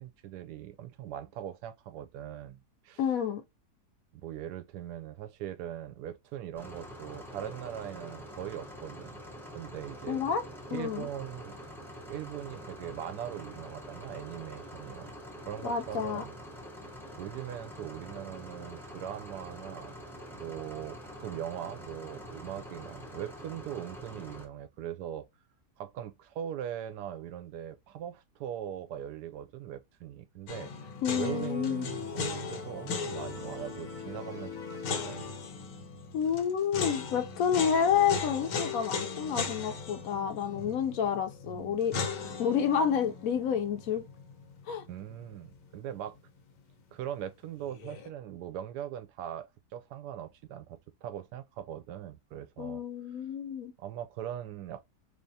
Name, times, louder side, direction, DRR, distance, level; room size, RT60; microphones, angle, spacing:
voice 1, 0.0-2.6 2.8-3.0 4.1-9.2 9.5-10.2 10.7-11.6 12.1-15.1 15.5-16.3 17.1-19.9 20.3-25.3 25.8-34.6 34.9-35.3 41.5-41.9 44.9-46.2 46.9-52.8 53.8-54.9, right 11 dB, 75° right, 1.1 m, -40 dB
voice 2, 3.0-3.4 10.1-10.4 10.7-11.1 15.6-16.2 31.0-31.9 36.1-44.0 44.7-44.9 52.6-53.7, left 7 dB, 65° left, 0.9 m, -29 dB
sound 1, 6.5-24.5, equal, 5° left, 0.3 m, -46 dB
sound 2, 30.5-45.5 45.7-45.8 47.6-48.1, left 5 dB, 85° left, 1.5 m, -38 dB
sound 3, 31.2-35.9, left 5 dB, 40° left, 0.7 m, -43 dB
3.5 x 3.3 x 2.7 m
omnidirectional pair, 1.8 m